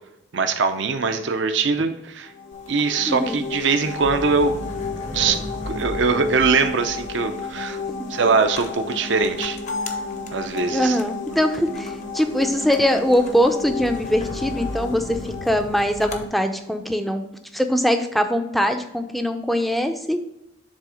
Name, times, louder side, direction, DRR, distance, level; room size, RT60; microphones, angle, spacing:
voice 1, 0.3-2.3 2.7-4.6 5.1-5.4 5.7-7.8 8.1-9.6 10.3-11.0, right 4 dB, 65° right, 7 dB, 0.5 m, -22 dB
sound 1, 2.3-16.9, left 4 dB, 70° left, 1.0 m, -33 dB
sound 2, 2.5-16.3, left 2 dB, 35° left, 0.7 m, -37 dB
voice 2, 3.1-3.4 10.7-17.2 17.5-20.2, equal, ahead, 6 dB, 0.5 m, -22 dB
7.5 x 3.4 x 5.0 m, 0.86 s
head